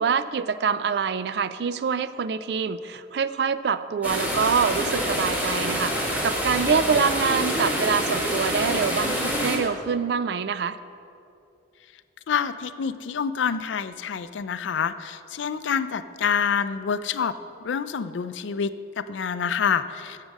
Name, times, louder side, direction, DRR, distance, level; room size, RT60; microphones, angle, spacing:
voice 1, 0.0-10.8, right 6 dB, 60° right, 14 dB, 0.3 m, -25 dB
sound 1, 4.0-9.6, equal, 10° right, 1.3 m, -26 dB
voice 2, 12.3-17.3 17.6-20.3, left 7 dB, 80° left, 13 dB, 0.4 m, -27 dB
8.1 x 7.5 x 6.4 m, 2.6 s
head